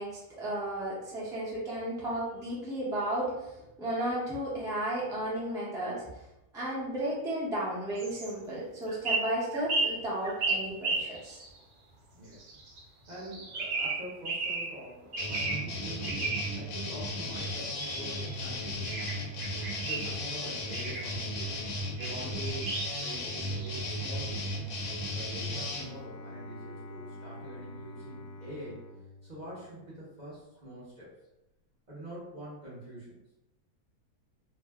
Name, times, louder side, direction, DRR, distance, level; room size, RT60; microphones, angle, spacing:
voice 1, 0.0-6.0 6.5-11.4, right 1 dB, 5° right, -8 dB, 0.4 m, -34 dB
sound 1, 8.0-8.3 8.9-11.6 12.3-12.8 13.1-14.8 15.1-15.7 16.0-16.6 17.3-18.4 18.8-20.1 20.7-21.1 22.0-22.1 22.4-24.0, right 3 dB, 85° right, 0.4 m, -34 dB
voice 2, 12.1-12.5 13.1-19.2 19.8-21.5 21.9-24.6 25.1-28.8 29.2-31.1 31.9-33.2, equal, 40° right, -8 dB, 0.7 m, -45 dB
sound 2, 15.2-25.8, left 1 dB, 70° left, 1.0 m, -35 dB
Bowed string instrument, 25.5-30.2, left 1 dB, 90° left, 1.1 m, -47 dB
2.6 x 2.1 x 3.4 m, 0.94 s
omnidirectional pair, 1.7 m